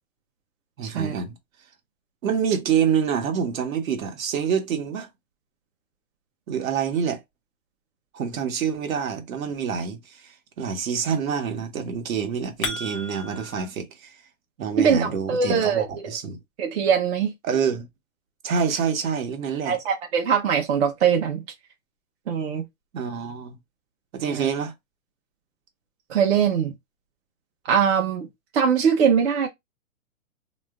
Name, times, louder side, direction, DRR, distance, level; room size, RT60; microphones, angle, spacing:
voice 1, 0.8-1.3 2.2-5.1 6.5-7.2 8.1-14.2 14.6-16.4 17.4-17.9 18.4-19.8 22.9-23.6 24.1-24.7, right 7 dB, 75° right, 1.0 m, -27 dB
sound 1, 12.2-13.7, left 2 dB, 20° left, 0.5 m, -33 dB
voice 2, 14.8-16.1 16.6-17.3 18.7-18.8 19.6-21.4 22.3-22.7 24.3-24.5 26.1-26.7 27.7-28.3 28.5-29.5, right 7 dB, 50° right, 0.7 m, -22 dB
2.4 x 2.0 x 3.4 m
hypercardioid pair, 160°, 41 cm